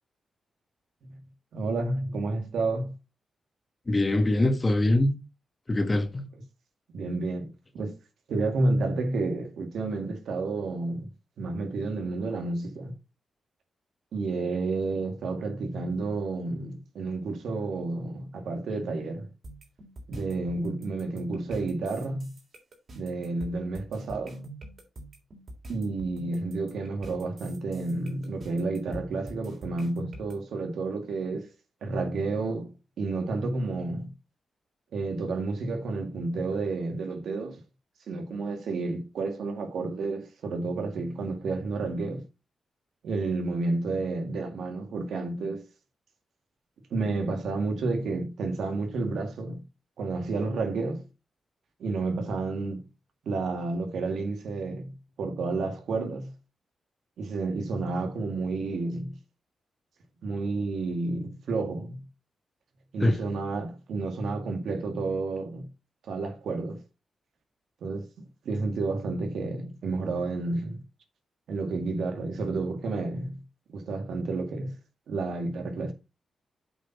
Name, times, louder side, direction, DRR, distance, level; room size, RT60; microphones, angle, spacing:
voice 1, 1.5-2.9 6.9-8.0 8.3-11.1 11.4-12.9 14.1-19.3 20.1-22.3 23.0-24.5 25.7-31.5 31.8-34.1 34.9-37.6 38.1-42.2 43.0-45.7 46.9-49.6 50.0-51.0 51.8-52.8 53.3-56.3 57.2-59.1 60.2-62.0 62.9-65.7 66.1-66.8 67.8-68.1 68.5-70.8 71.5-73.4 73.7-74.7 75.1-75.9, right 3 dB, 80° right, 2.0 m, -30 dB
voice 2, 3.9-5.1 5.7-6.3 63.0-63.2, left 1 dB, 25° left, 1.5 m, -23 dB
sound 1, 19.4-30.3, right 1 dB, 50° right, 3.4 m, -45 dB
8.2 x 4.3 x 5.7 m
wide cardioid pair, 120°, 0 cm